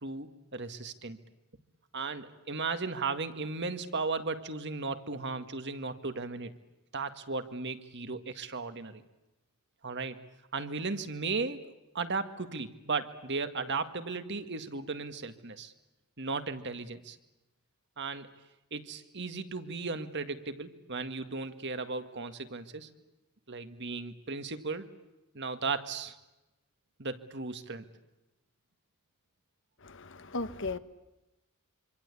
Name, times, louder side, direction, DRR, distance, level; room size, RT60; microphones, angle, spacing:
voice 1, 0.0-1.2 1.9-6.5 6.9-9.0 9.8-10.2 10.5-15.7 16.2-17.2 18.0-18.3 18.7-22.9 23.5-24.9 25.3-26.2 27.0-27.9, right 4 dB, 55° right, 2.0 m, -36 dB
voice 2, 29.8-30.8, left 3 dB, 60° left, 1.5 m, -36 dB
26.5 x 26.0 x 8.5 m
head